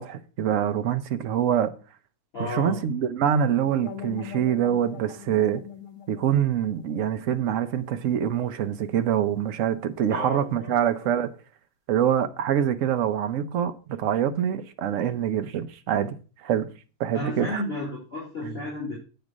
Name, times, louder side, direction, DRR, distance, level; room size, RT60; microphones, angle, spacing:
voice 1, 0.0-1.7 2.4-5.6 6.1-11.3 11.9-16.2 16.4-16.7 17.0-17.6 18.4-18.5, right 9 dB, 60° right, 1.0 m, -25 dB
voice 2, 2.3-2.8 10.1-11.1 17.1-19.0, left 2 dB, 35° left, 4.1 m, -33 dB
sound 1, 3.7-8.6, left 7 dB, 50° left, 1.6 m, -43 dB
8.5 x 5.3 x 6.1 m
omnidirectional pair, 1.8 m